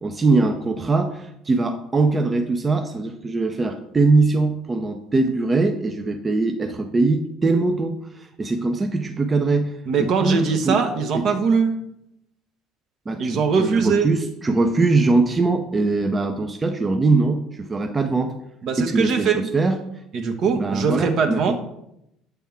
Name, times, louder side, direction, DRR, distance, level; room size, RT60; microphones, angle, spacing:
voice 1, 0.0-9.7 10.0-10.8 11.1-11.4 13.1-13.3 13.6-18.3 18.8-19.8 20.5-21.6, right 3 dB, 25° right, 6 dB, 0.5 m, -21 dB
voice 2, 9.9-11.7 13.2-14.1 18.6-19.5 20.1-21.6, right 5 dB, 55° right, 5 dB, 0.9 m, -21 dB
7.2 x 3.5 x 4.5 m, 0.79 s
hypercardioid pair, 60°, 0 cm